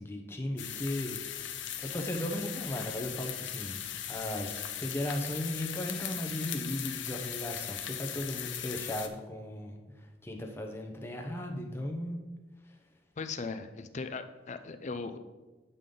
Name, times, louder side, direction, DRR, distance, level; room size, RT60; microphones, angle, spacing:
voice 1, 0.0-12.2 12.6-12.8, left 1 dB, 15° left, 2 dB, 0.8 m, -37 dB
sound 1, 0.6-9.1, left 10 dB, 85° left, 0.6 m, -39 dB
voice 2, 13.2-15.2, left 4 dB, 40° left, 9 dB, 0.5 m, -38 dB
8.4 x 5.3 x 3.8 m, 1.2 s
head